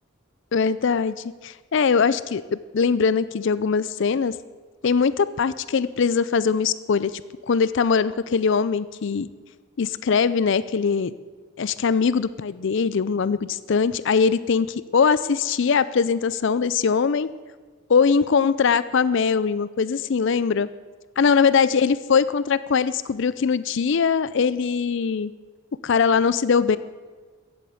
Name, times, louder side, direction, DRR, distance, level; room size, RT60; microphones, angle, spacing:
voice 1, 0.5-1.2 1.4-4.4 4.8-7.2 7.5-9.3 9.8-11.1 11.6-17.3 17.9-20.7 21.2-25.3 25.8-26.8, left 5 dB, 60° left, 16 dB, 0.4 m, -21 dB
15.0 x 8.2 x 8.7 m, 1.4 s
head